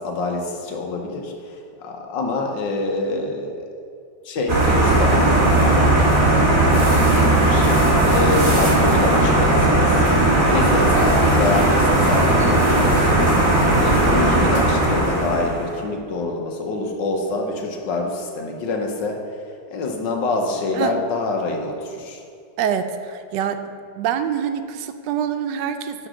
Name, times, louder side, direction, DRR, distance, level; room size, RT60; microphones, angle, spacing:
voice 1, 0.0-3.7 4.2-5.8 6.8-7.7 8.1-19.2 19.7-22.2, left 2 dB, 85° left, 2 dB, 1.7 m, -26 dB
sound 1, 4.5-15.7, right 1 dB, 30° right, 1.7 m, -17 dB
voice 2, 22.6-23.6 24.0-26.1, right 8 dB, 80° right, 9 dB, 1.2 m, -25 dB
10.0 x 4.0 x 6.2 m, 2.4 s
omnidirectional pair, 1.9 m